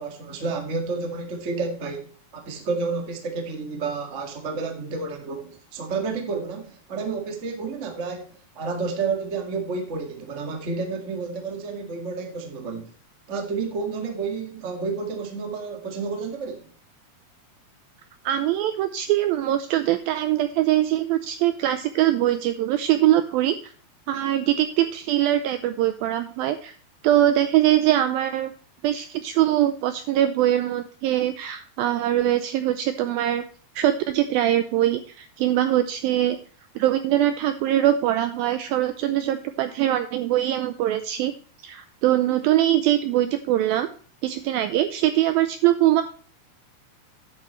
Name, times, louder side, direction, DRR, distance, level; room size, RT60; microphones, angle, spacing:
voice 1, 0.0-12.9 13.3-16.7, right 4 dB, 65° right, 0.7 m, -30 dB
voice 2, 18.3-23.7 24.1-26.7 27.0-28.5 28.8-33.4 33.8-36.4 36.8-41.3 41.6-43.9 44.2-46.0, right 13 dB, 85° right, 2.1 m, -22 dB
10.5 x 8.3 x 3.1 m
omnidirectional pair, 4.8 m